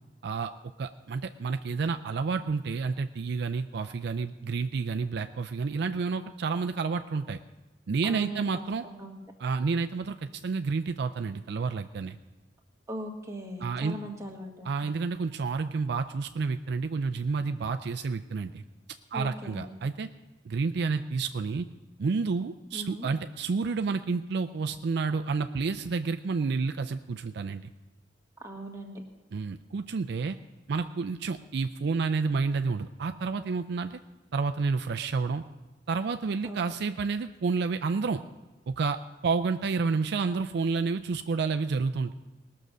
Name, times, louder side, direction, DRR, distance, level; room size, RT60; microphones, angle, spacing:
voice 1, 0.8-7.4 7.9-8.8 9.4-12.2 13.6-14.0 14.6-18.6 19.1-20.1 20.4-21.7 22.0-27.7 29.3-30.4 30.7-34.0 34.3-35.4 35.9-38.2 38.7-42.1, right 4 dB, 60° right, 7 dB, 0.4 m, -30 dB
voice 2, 8.0-8.5 8.8-9.1 12.9-14.9 19.1-19.7 22.7-23.1 28.4-29.0 36.4-36.8, equal, 15° right, 0 dB, 1.7 m, -40 dB
19.5 x 6.6 x 6.2 m, 1.1 s
head